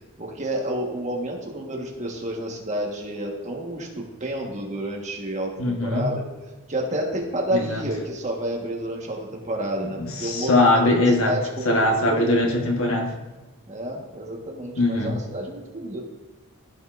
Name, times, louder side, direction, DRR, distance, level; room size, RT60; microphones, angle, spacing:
voice 1, 0.2-6.2 6.7-10.8 11.2-12.4 13.7-16.0, right 1 dB, 35° right, -1 dB, 1.4 m, -30 dB
voice 2, 5.6-6.1 7.5-7.8 10.0-11.4 11.6-13.2 14.8-15.2, left 2 dB, 70° left, 1 dB, 1.4 m, -21 dB
15.0 x 5.4 x 2.6 m, 1.1 s
head